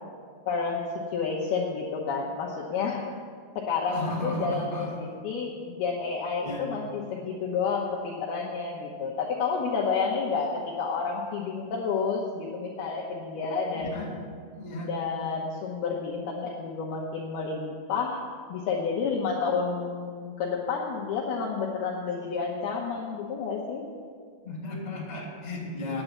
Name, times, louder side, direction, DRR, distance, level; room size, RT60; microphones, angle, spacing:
voice 1, 0.5-0.8 1.1-3.0 3.6-14.0 14.8-18.2 18.5-23.8, left 5 dB, 75° left, -3 dB, 2.5 m, -30 dB
voice 2, 3.9-5.0 6.4-6.7 13.7-14.1 14.5-14.9 24.4-26.0, left 1 dB, 20° left, -4 dB, 2.4 m, -34 dB
9.5 x 8.9 x 8.6 m, 2.1 s
omnidirectional pair, 5.5 m